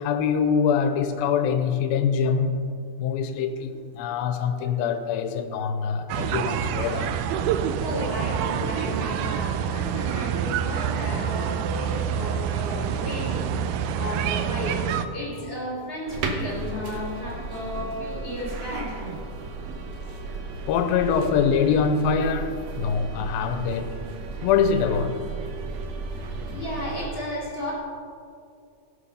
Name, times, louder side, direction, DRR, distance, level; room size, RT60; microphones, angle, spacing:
voice 1, 0.0-2.7 3.0-7.2 11.8-11.9 20.7-24.0 24.4-25.2, left 6 dB, 85° left, 8 dB, 2.5 m, -24 dB
sound 1, 6.1-15.1, right 8 dB, 90° right, 1.7 m, -27 dB
voice 2, 7.8-18.9 26.5-27.7, left 1 dB, 20° left, -4 dB, 3.1 m, -33 dB
sound 2, 16.1-27.1, right 3 dB, 70° right, 1.7 m, -34 dB
17.0 x 6.4 x 5.6 m, 2.4 s
omnidirectional pair, 4.2 m